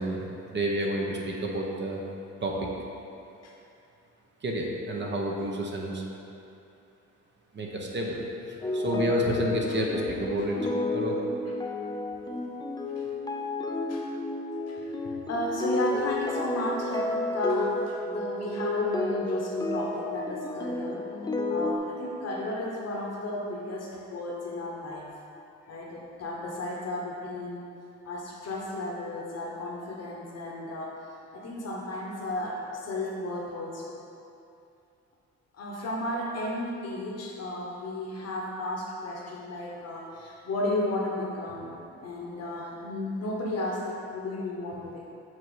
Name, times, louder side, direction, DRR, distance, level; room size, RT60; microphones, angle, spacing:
voice 1, 0.0-2.0 2.4-2.7 4.4-6.0 7.5-8.2 8.7-10.6 10.9-11.2, equal, 40° right, -1 dB, 0.9 m, -29 dB
voice 2, 8.6-9.0 9.7-9.8 11.5-11.6 13.0-13.1 13.9-14.0 14.7-21.0 21.5-25.1 25.7-27.7 28.0-34.0 35.5-41.7 42.0-45.1, left 1 dB, 55° left, -2 dB, 1.1 m, -34 dB
sound 1, 8.6-21.8, left 2 dB, 15° left, 0.4 m, -31 dB
7.5 x 2.8 x 4.9 m, 2.7 s
cardioid pair, 90°, 30 cm